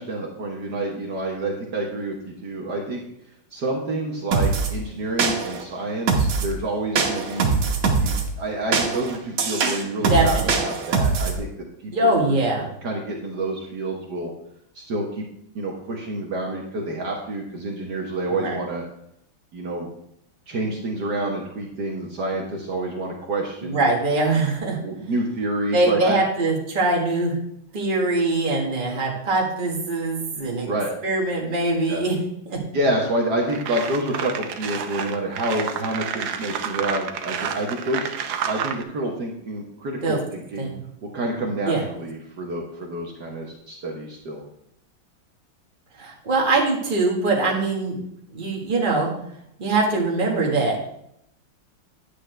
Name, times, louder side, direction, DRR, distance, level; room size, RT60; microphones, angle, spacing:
voice 1, 0.0-3.0 3.5-7.6 8.0-8.1 8.4-12.3 12.8-14.3 14.8-15.3 15.6-18.8 19.5-19.9 20.5-23.8 24.8-26.2 30.7-30.9 31.9-32.0 32.7-38.1 38.5-40.7 41.1-44.4, right 1 dB, 55° right, -1 dB, 1.7 m, -28 dB
sound 1, 4.3-4.7 5.2-5.6 6.1-6.5 7.0-8.2 8.7-11.4, right 5 dB, 90° right, 2.1 m, -22 dB
voice 2, 10.1-10.6 11.9-12.7 18.3-18.6 23.6-24.8 25.7-27.4 27.7-30.7 31.0-32.2 32.5-32.6 40.0-40.2 40.6-40.8 41.7-41.8 46.0-48.0 48.3-49.1 49.6-50.9, right 2 dB, 25° right, -1 dB, 1.8 m, -22 dB
sound 2, 33.0-33.1 33.5-38.8, right 8 dB, 75° right, 1.5 m, -30 dB
9.9 x 8.5 x 3.4 m, 0.75 s
omnidirectional pair, 2.2 m